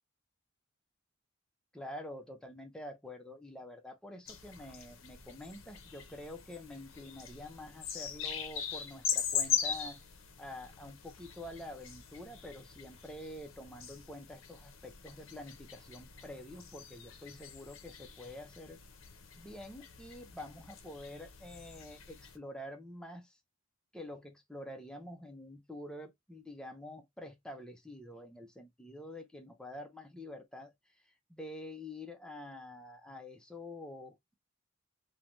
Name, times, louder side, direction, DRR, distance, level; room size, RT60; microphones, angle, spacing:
voice 1, 1.7-10.0 10.4-18.8 19.4-23.4 23.9-34.3, left 1 dB, 5° left, 0.5 m, -47 dB
sound 1, 4.3-22.4, left 8 dB, 70° left, 0.6 m, -41 dB
3.2 x 2.2 x 2.5 m
head